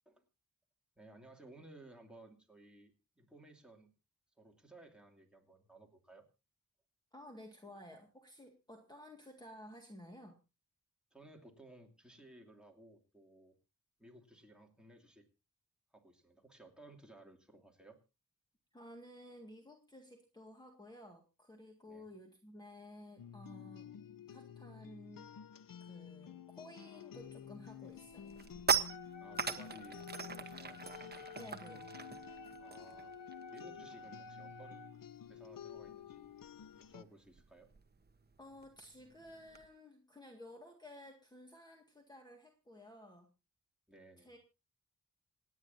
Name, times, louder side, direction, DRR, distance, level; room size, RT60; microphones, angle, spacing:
voice 1, 1.0-3.9 4.4-6.3 11.1-13.6 14.0-15.3 15.9-18.0 21.9-22.1 29.2-30.8 32.6-33.1 33.5-34.8 35.3-36.3 36.8-37.7 43.9-44.3, right 1 dB, 5° right, 1 dB, 2.5 m, -58 dB
voice 2, 7.1-10.4 18.7-23.9 24.3-25.3 25.8-28.4 31.3-31.9 38.4-43.3 44.2-44.4, left 1 dB, 10° left, 3 dB, 1.9 m, -54 dB
sound 1, 23.2-37.0, left 8 dB, 85° left, 0.8 m, -51 dB
sound 2, 27.3-27.5 27.9-33.9 34.1-34.4 34.7-39.7, right 6 dB, 30° right, 1.0 m, -40 dB
Wind instrument woodwind instrument, 28.9-35.0, left 1 dB, 60° left, 1.5 m, -53 dB
27.5 x 9.6 x 2.7 m, 0.29 s
wide cardioid pair, 175°, 33 cm